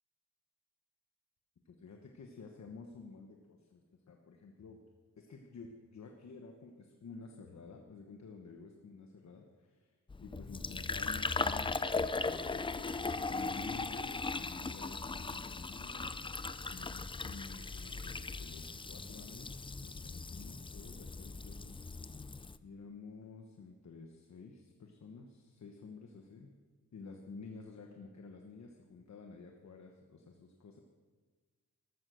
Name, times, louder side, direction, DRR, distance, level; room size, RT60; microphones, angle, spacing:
voice 1, 1.6-4.8 5.2-12.7 13.2-16.2 16.5-22.2 22.6-26.5 26.9-30.8, left 4 dB, 55° left, 3 dB, 1.2 m, -51 dB
Fill (with liquid), 10.1-22.6, left 3 dB, 15° left, 0.4 m, -38 dB
14.0 x 12.5 x 6.7 m, 1.4 s
wide cardioid pair, 165°, 32 cm